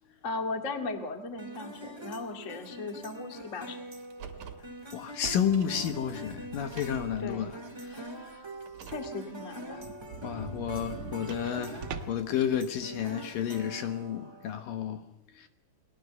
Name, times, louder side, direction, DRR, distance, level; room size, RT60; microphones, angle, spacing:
voice 1, 0.2-3.9 7.2-7.5 8.8-9.8, left 3 dB, 90° left, 0.6 m, -37 dB
sound 1, 1.4-14.6, right 1 dB, 30° right, 0.5 m, -44 dB
Car, 4.0-4.7 5.8-5.9 6.6-7.2 8.5-9.2 11.0-11.8, right 8 dB, 55° right, 3.3 m, -48 dB
voice 2, 4.9-8.4 10.2-15.5, left 9 dB, 70° left, 2.2 m, -32 dB
sound 2, 5.1-7.6 8.1-8.2 8.6-8.7 8.9-9.0 9.3-9.4 9.7-12.3, right 4 dB, 80° right, 1.4 m, -43 dB
29.5 x 21.0 x 6.8 m
omnidirectional pair, 5.3 m